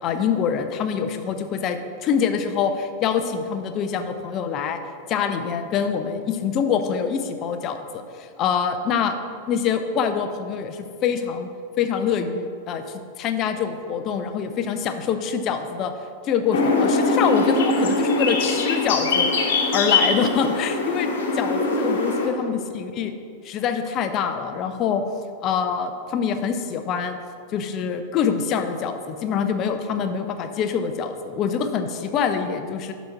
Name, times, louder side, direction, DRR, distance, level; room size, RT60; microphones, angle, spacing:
voice 1, 0.0-4.8 5.1-9.1 9.5-11.5 11.8-15.9 16.2-19.3 19.7-21.1 21.3-23.1 23.4-25.0 25.4-27.2 27.5-32.9, left 7 dB, 35° left, 8 dB, 0.6 m, -25 dB
sound 1, 16.5-22.3, left 3 dB, 60° left, 1.2 m, -22 dB
11.5 x 4.1 x 4.7 m, 2.3 s
figure-of-eight pair, 90°, 0 cm